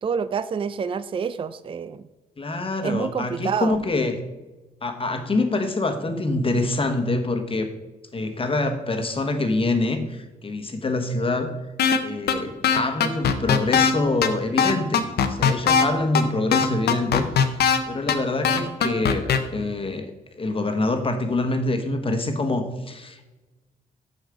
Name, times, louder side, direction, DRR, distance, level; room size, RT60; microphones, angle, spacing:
voice 1, 0.0-2.1 2.8-3.8, right 6 dB, 35° right, 14 dB, 0.4 m, -27 dB
voice 2, 2.4-4.2 4.8-7.7 8.1-11.6 12.0-17.5 17.9-23.2, left 2 dB, 35° left, 7 dB, 1.1 m, -25 dB
sound 1, 11.8-12.0 12.3-12.4 12.6-13.9 14.2-14.3 14.6-15.9 16.2-16.3 16.5-17.8 18.1-18.2 18.4-19.4, left 7 dB, 80° left, 0.7 m, -19 dB
6.4 x 6.4 x 5.0 m, 1.1 s
cardioid pair, 70°, 17 cm